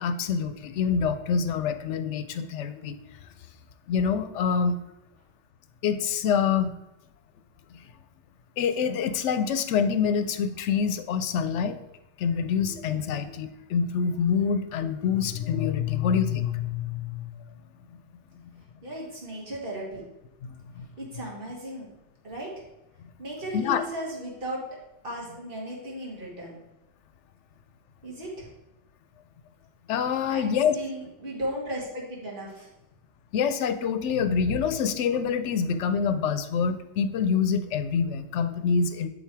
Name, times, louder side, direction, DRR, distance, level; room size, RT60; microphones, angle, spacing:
voice 1, 0.0-3.0 3.9-4.8 5.8-6.7 7.7-7.8 8.6-11.8 12.2-17.3 20.4-20.9 23.5-23.8 29.9-30.7 33.3-39.1, left 6 dB, 90° left, 11 dB, 0.9 m, -26 dB
voice 2, 18.8-20.0 21.0-21.9 22.2-22.5 23.2-24.6 25.0-26.6 28.0-28.5 30.3-32.7, right 1 dB, 50° right, -4 dB, 2.0 m, -36 dB
7.4 x 3.8 x 4.6 m, 0.91 s
omnidirectional pair, 1.2 m